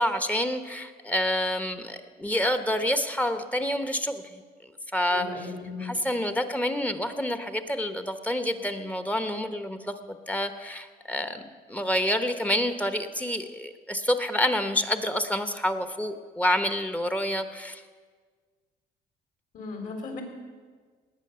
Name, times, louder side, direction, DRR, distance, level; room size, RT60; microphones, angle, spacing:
voice 1, 0.0-4.4 4.9-5.2 5.8-17.8, left 1 dB, 10° left, 8 dB, 1.0 m, -28 dB
voice 2, 5.1-6.0 19.5-20.2, left 4 dB, 55° left, 3 dB, 4.0 m, -36 dB
19.0 x 9.0 x 6.8 m, 1.5 s
cardioid pair, 110°, 17 cm